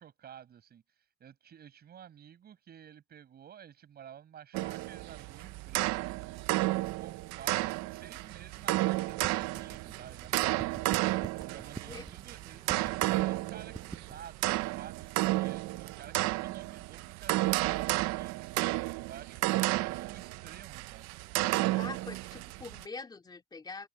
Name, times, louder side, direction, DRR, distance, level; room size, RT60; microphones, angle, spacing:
voice 1, 0.0-6.2 6.7-10.9 11.4-18.6 19.1-21.1, right 9 dB, 30° right, 6.0 m, -51 dB
sound 1, 4.5-22.8, right 19 dB, 60° right, 0.6 m, -32 dB
sound 2, 8.6-14.2, right 4 dB, 15° right, 7.8 m, -48 dB
voice 2, 21.8-23.9, left 4 dB, 15° left, 2.6 m, -44 dB
open air
cardioid pair, 170°, 31 cm